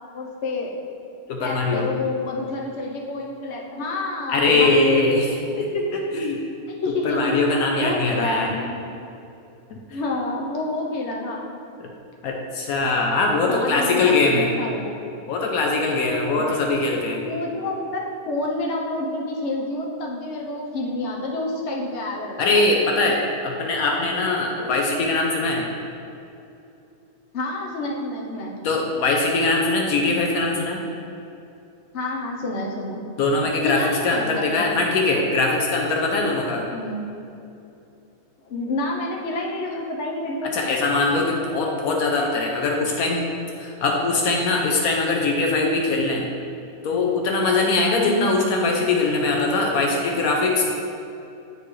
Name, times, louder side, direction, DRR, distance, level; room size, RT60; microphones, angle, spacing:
voice 1, 0.1-0.8 1.4-5.0 5.4-5.7 6.7-8.8 9.9-11.5 13.5-15.0 16.4-22.6 27.3-28.6 31.9-33.0 33.6-34.9 36.7-37.0 38.5-40.5 48.0-48.3, left 2 dB, 55° left, -1 dB, 1.0 m, -29 dB
voice 2, 1.3-1.9 4.3-6.4 7.0-8.5 9.7-9.8 12.2-14.5 15.3-17.2 22.4-25.7 28.6-30.8 33.2-36.6 40.4-43.2 43.6-46.3 46.8-50.6, left 3 dB, 75° left, 0 dB, 1.1 m, -21 dB
8.8 x 4.1 x 3.2 m, 2.7 s
omnidirectional pair, 1.6 m